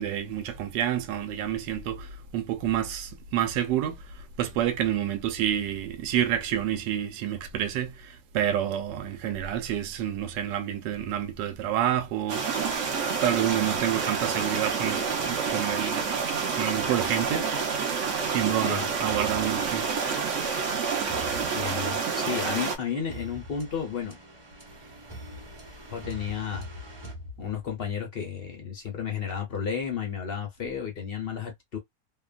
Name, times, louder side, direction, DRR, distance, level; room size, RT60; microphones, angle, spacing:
voice 1, 0.0-12.5 13.1-16.0 16.5-17.5 18.2-19.9, right 10 dB, 80° right, 1.2 m, -29 dB
sound 1, 12.3-22.8, right 5 dB, 55° right, 0.8 m, -28 dB
sound 2, 19.1-27.9, equal, 20° right, 0.8 m, -45 dB
voice 2, 21.5-24.2 25.9-26.7 27.4-31.8, left 7 dB, 65° left, 0.5 m, -32 dB
3.0 x 2.2 x 2.4 m
omnidirectional pair, 2.0 m